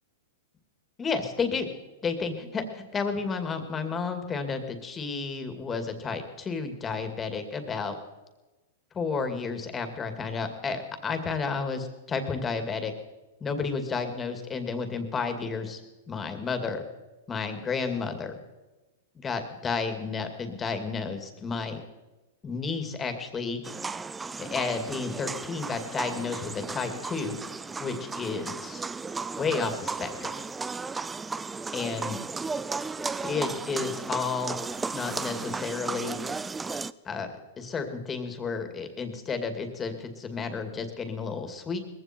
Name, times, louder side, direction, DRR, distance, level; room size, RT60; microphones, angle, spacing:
voice 1, 1.0-1.7 2.0-8.0 8.9-12.9 13.4-15.8 16.1-16.8 17.3-18.3 19.2-21.8 22.4-23.6 24.4-27.4 27.8-28.8 29.4-30.3 31.7-32.2 33.2-34.6 34.9-36.2 37.0-37.3 37.6-41.8, left 5 dB, 20° left, 7 dB, 2.4 m, -31 dB
sound 1, 23.6-36.9, right 4 dB, 10° right, 0.4 m, -35 dB
20.5 x 15.5 x 4.5 m, 1.1 s
hypercardioid pair, 130°, 0 cm